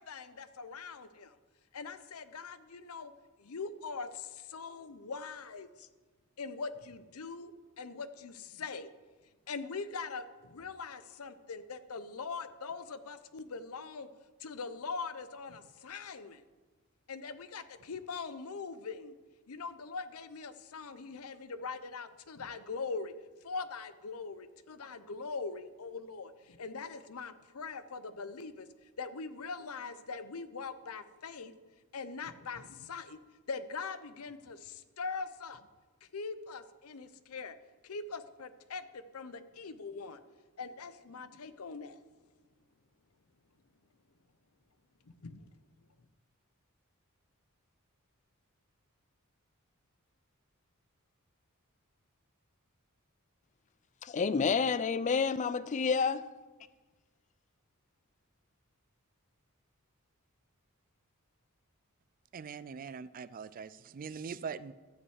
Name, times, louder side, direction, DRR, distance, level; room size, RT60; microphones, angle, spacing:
voice 1, 0.0-1.4 1.7-3.1 3.4-5.9 6.4-8.9 9.5-14.1 14.4-16.4 17.1-19.2 19.5-23.1 23.4-31.5 31.9-33.2 33.5-35.7 36.0-37.6 37.8-40.2 40.6-42.0 45.2-45.5, left 4 dB, 75° left, 0.7 m, -42 dB
voice 2, 54.0-56.2, left 5 dB, 35° left, 0.4 m, -29 dB
voice 3, 62.3-64.7, right 6 dB, 40° right, 0.4 m, -42 dB
12.5 x 5.4 x 8.0 m
head